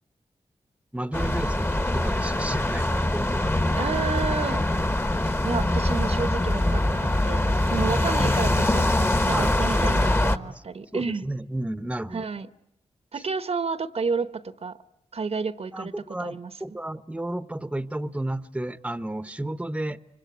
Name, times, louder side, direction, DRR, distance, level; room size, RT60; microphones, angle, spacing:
voice 1, 0.9-4.0 9.3-9.7 10.5-10.6 10.9-12.3 13.1-13.2 15.7-20.0, right 1 dB, 10° right, 0.9 m, -32 dB
sound 1, 1.1-10.4, left 1 dB, 20° left, 1.3 m, -23 dB
voice 2, 3.7-4.6 5.2-8.9 9.3-11.2 12.1-12.5 13.1-14.8 15.1-15.9 16.2-16.5, right 5 dB, 60° right, 1.1 m, -31 dB
25.0 x 24.5 x 9.3 m
cardioid pair, 60°, 12 cm